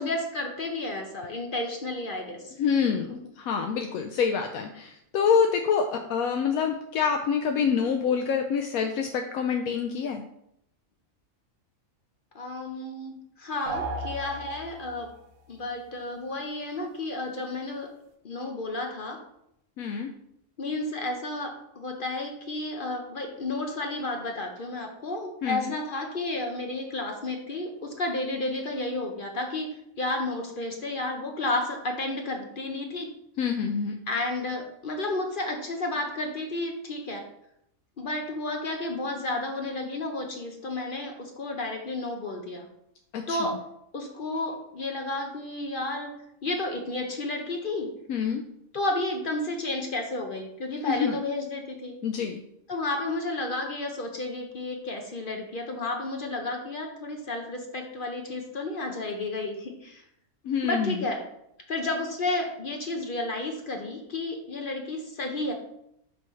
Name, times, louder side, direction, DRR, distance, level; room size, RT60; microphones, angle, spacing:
voice 1, 0.0-2.5 12.3-15.1 15.5-17.9 18.2-19.2 20.6-29.7 30.0-33.1 34.1-37.2 38.0-42.7 43.3-43.6 43.9-46.1 46.4-47.9 48.7-51.9 52.7-60.0 60.6-61.2 61.7-65.5, left 2 dB, 45° left, 3 dB, 0.8 m, -32 dB
voice 2, 2.6-10.2 19.8-20.1 25.4-25.7 33.4-34.0 43.1-43.4 48.1-48.4 50.9-51.2 52.0-52.4 60.5-61.0, left 6 dB, 80° left, 4 dB, 1.0 m, -26 dB
sound 1, 13.7-15.2, right 2 dB, 80° right, 1.3 m, -34 dB
6.1 x 3.1 x 5.5 m, 0.77 s
omnidirectional pair, 1.5 m